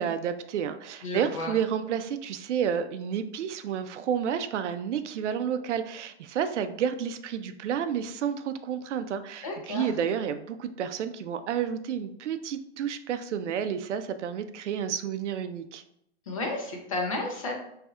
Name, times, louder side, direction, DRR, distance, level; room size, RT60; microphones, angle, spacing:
voice 1, 0.0-15.8, right 8 dB, 80° right, 10 dB, 0.5 m, -30 dB
voice 2, 1.0-1.5 9.4-9.9 16.3-17.5, left 2 dB, 30° left, 1 dB, 0.5 m, -32 dB
4.2 x 3.3 x 2.3 m, 0.75 s
hypercardioid pair, 175°, 35 cm